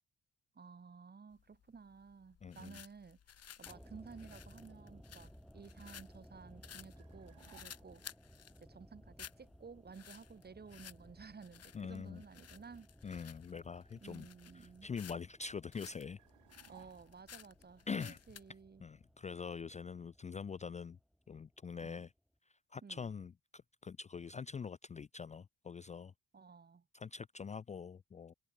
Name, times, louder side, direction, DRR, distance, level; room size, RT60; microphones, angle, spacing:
voice 1, 0.5-3.2 3.6-8.0 8.6-12.9 14.0-14.9 16.7-18.8 21.8-22.0 22.8-23.1 26.3-26.9, right 5 dB, 35° right, 2.6 m, -54 dB
sound 1, 1.3-18.5, left 9 dB, 55° left, 2.7 m, -56 dB
voice 2, 2.4-2.8 11.7-12.2 13.0-14.3 14.5-16.2 17.9-18.2 18.8-21.0 21.3-22.1 22.7-26.1 26.9-28.3, left 6 dB, 25° left, 0.4 m, -44 dB
sound 2, 3.7-21.9 22.1-22.2, equal, ahead, 2.2 m, -60 dB
sound 3, 7.0-8.1 16.2-17.5, right 14 dB, 80° right, 1.4 m, -64 dB
cardioid pair, 90°, 30 cm